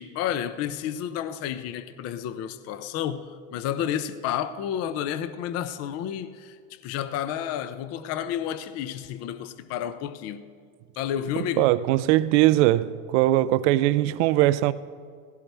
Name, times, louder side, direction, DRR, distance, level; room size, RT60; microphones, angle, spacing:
voice 1, 0.0-10.4 11.0-11.7, left 10 dB, 40° left, 0.6 m, -31 dB
voice 2, 11.6-14.7, right 15 dB, 65° right, 0.5 m, -20 dB
17.5 x 15.5 x 3.4 m
supercardioid pair, 135°, 39 cm